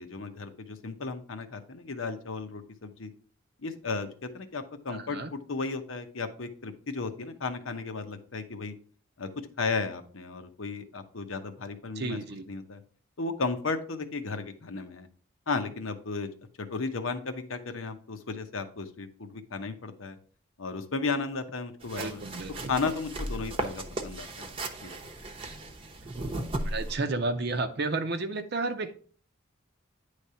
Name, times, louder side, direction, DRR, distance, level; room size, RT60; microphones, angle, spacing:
voice 1, 0.0-3.1 3.6-8.7 9.2-12.2 12.5-12.8 13.2-15.1 15.5-16.3 16.6-20.2 20.6-22.2 22.7-24.5 24.8-24.9, left 4 dB, 80° left, 7 dB, 1.0 m, -34 dB
voice 2, 4.9-5.3 12.0-12.4 21.9-22.7 26.0-26.2 26.6-29.0, right 3 dB, 55° right, 7 dB, 0.6 m, -32 dB
sound 1, 21.8-26.9, right 1 dB, 25° right, 0.8 m, -36 dB
9.7 x 3.3 x 5.6 m, 0.44 s
head